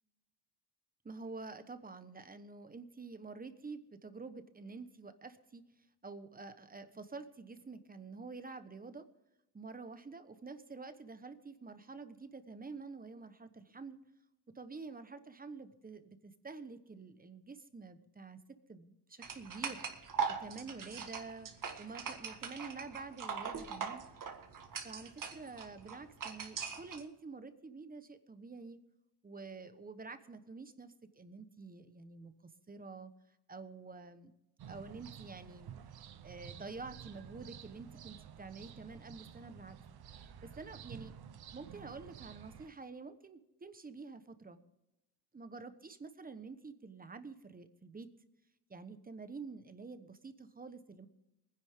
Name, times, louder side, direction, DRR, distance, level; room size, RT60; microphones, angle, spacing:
voice 1, 1.0-5.6 6.0-9.1 9.5-14.0 14.5-19.8 20.3-21.5 21.8-24.0 24.8-28.8 29.2-33.1 33.5-34.3 34.7-35.7 36.2-39.8 40.4-41.1 41.5-44.6 45.3-48.1 48.7-51.1, right 4 dB, 20° right, 11 dB, 1.1 m, -48 dB
sound 1, 19.2-27.0, right 6 dB, 50° right, 1.8 m, -41 dB
sound 2, 34.6-42.7, right 8 dB, 65° right, 1.0 m, -52 dB
22.5 x 10.5 x 3.7 m, 0.91 s
cardioid pair, 115°, 40 cm